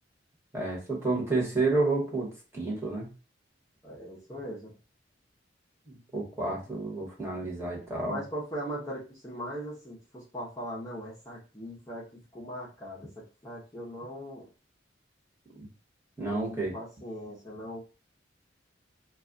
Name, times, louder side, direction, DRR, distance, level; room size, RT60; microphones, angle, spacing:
voice 1, 0.5-3.1 5.9-8.2 15.5-15.7 16.2-16.7, right 3 dB, 15° right, -3 dB, 1.1 m, -30 dB
voice 2, 3.8-4.7 8.0-14.5 16.2-17.8, equal, 20° left, -6 dB, 0.7 m, -40 dB
2.3 x 2.2 x 3.7 m, 0.33 s
head